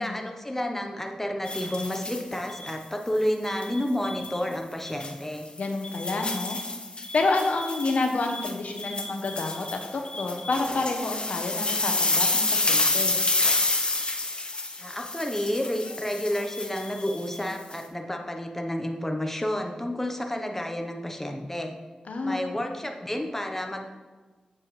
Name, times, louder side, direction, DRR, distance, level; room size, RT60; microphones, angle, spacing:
voice 1, 0.0-5.5 14.8-21.7 22.2-23.9, left 1 dB, 15° left, 3 dB, 0.9 m, -30 dB
sound 1, 1.5-2.7 3.5-4.4 4.9-5.1 5.6-17.8, left 2 dB, 45° left, 0.9 m, -29 dB
voice 2, 5.6-6.6 7.1-13.1 22.1-22.4, left 3 dB, 80° left, 4 dB, 0.9 m, -29 dB
7.6 x 7.4 x 3.2 m, 1.3 s
wide cardioid pair, 70°, 2 cm